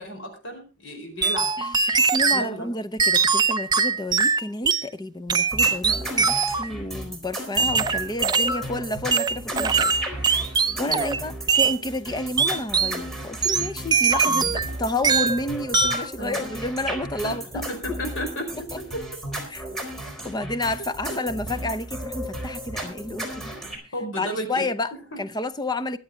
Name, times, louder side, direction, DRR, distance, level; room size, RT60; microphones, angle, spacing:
voice 1, 0.0-1.5 2.3-2.7 10.9-11.3 14.3-14.5 16.2-16.5 17.2-19.0 23.5-24.6 24.9-25.2, equal, 70° left, 4.7 m, -34 dB
sound 1, 1.2-2.5 3.0-4.9 5.3-6.7 7.6-8.6 9.1-11.2 11.5-11.8 12.4-13.0 13.4-14.7 15.0-15.4 15.7-16.1, right 5 dB, 20° right, 0.6 m, -22 dB
voice 2, 1.6-9.9 10.2-14.5 14.8-17.6 18.0-18.3 19.5-19.6 20.2-23.6 24.2-24.9 25.2-26.0, left 2 dB, 20° left, 0.7 m, -30 dB
sound 2, 5.5-23.8, right 1 dB, ahead, 4.1 m, -34 dB
23.0 x 8.1 x 3.8 m
head